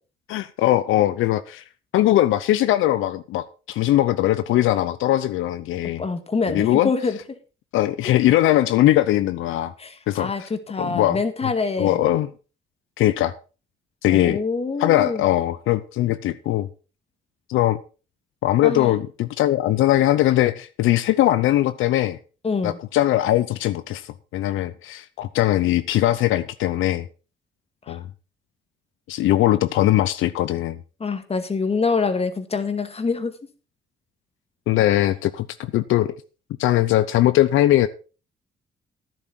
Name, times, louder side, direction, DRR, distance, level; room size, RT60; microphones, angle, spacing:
voice 1, 0.3-1.6 1.9-6.0 6.5-6.9 7.7-9.7 10.1-10.5 10.8-11.2 11.8-12.3 13.0-13.3 14.0-14.4 14.8-16.7 17.5-17.8 18.4-22.2 22.6-27.1 27.9-28.0 29.1-30.8 34.7-36.1 36.6-37.9, left 14 dB, 85° left, 0.7 m, -20 dB
voice 2, 6.0-7.2 9.8-12.0 14.0-15.3 18.6-18.9 22.4-22.8 27.9-28.0 31.0-33.3, left 4 dB, 30° left, 1.9 m, -25 dB
12.0 x 10.0 x 4.4 m
cardioid pair, 90°, 20 cm